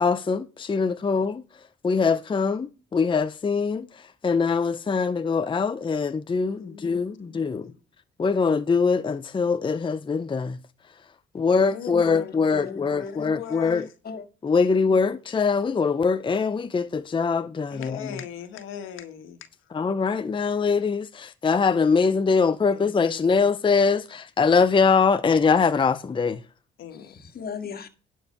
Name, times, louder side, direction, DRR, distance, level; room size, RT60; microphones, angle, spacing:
voice 1, 0.0-1.4 1.8-3.9 4.2-7.7 8.2-10.6 11.3-13.9 14.4-18.0 19.7-26.4, left 5 dB, 25° left, 0.6 m, -23 dB
voice 2, 6.6-7.8 11.6-13.9 14.9-15.0 17.7-19.5 22.7-23.4 26.8-27.1, left 8 dB, 85° left, 1.7 m, -40 dB
voice 3, 11.9-13.8 14.0-14.2 27.0-27.9, left 5 dB, 50° left, 1.8 m, -38 dB
11.5 x 4.6 x 6.6 m
cardioid pair, 90°, 20 cm